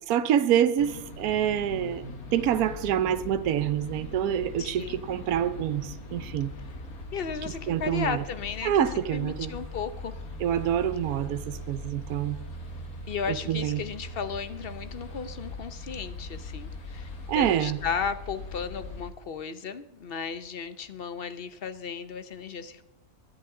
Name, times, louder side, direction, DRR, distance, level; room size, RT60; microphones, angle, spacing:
voice 1, 0.1-2.1 2.3-6.5 7.7-8.2 8.6-9.5 10.4-12.4 13.3-13.8 17.3-17.8, right 10 dB, 80° right, 11 dB, 1.1 m, -26 dB
sound 1, 0.8-19.1, left 2 dB, 75° left, 2.3 m, -41 dB
voice 2, 4.6-5.0 7.1-8.9 9.1-10.2 13.1-22.8, left 6 dB, 50° left, 11 dB, 0.8 m, -35 dB
24.5 x 11.0 x 3.8 m, 0.87 s
omnidirectional pair, 1.6 m